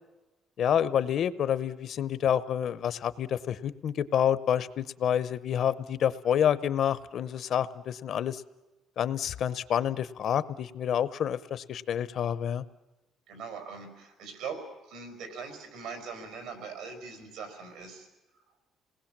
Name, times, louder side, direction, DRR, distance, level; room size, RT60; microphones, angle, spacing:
voice 1, 0.6-8.4 9.0-12.6, left 9 dB, 50° left, 16 dB, 0.7 m, -28 dB
voice 2, 13.3-18.1, right 5 dB, 85° right, 6 dB, 4.8 m, -41 dB
27.5 x 19.5 x 7.4 m, 1.1 s
cardioid pair, 165°, 0 cm